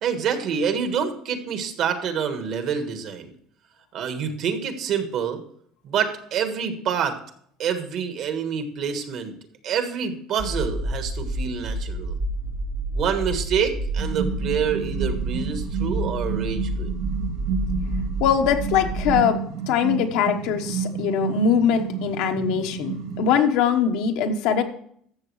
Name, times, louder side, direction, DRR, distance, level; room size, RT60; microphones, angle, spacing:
voice 1, 0.0-3.3 3.9-5.4 5.8-7.2 7.6-9.3 9.6-12.1 12.9-16.9, right 7 dB, 50° right, 7 dB, 1.4 m, -27 dB
sound 1, 10.4-19.1, right 1 dB, 20° right, 0.6 m, -29 dB
sound 2, 14.0-23.3, right 7 dB, 85° right, 1.5 m, -30 dB
voice 2, 18.2-19.4 19.7-24.6, left 7 dB, 70° left, 5 dB, 1.2 m, -22 dB
13.5 x 7.1 x 3.2 m, 0.63 s
cardioid pair, 160°, 0 cm